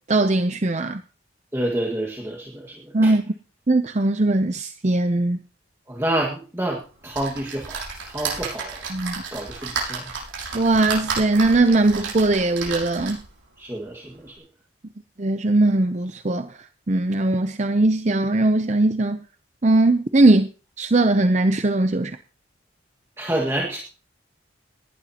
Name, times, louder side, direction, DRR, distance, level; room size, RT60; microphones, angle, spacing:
voice 1, 0.1-1.0 2.9-3.3 3.7-5.4 8.9-9.1 10.5-13.2 15.2-16.6 16.9-19.2 19.6-20.5 20.8-22.2, right 2 dB, 35° right, 0.6 m, -20 dB
voice 2, 1.5-3.1 5.9-8.8 9.3-10.1 13.6-14.4 23.2-23.8, right 1 dB, 15° right, 1.8 m, -28 dB
sound 1, 7.1-13.4 13.9-14.0 14.3-14.4, right 5 dB, 90° right, 7.1 m, -32 dB
18.0 x 12.0 x 2.9 m
head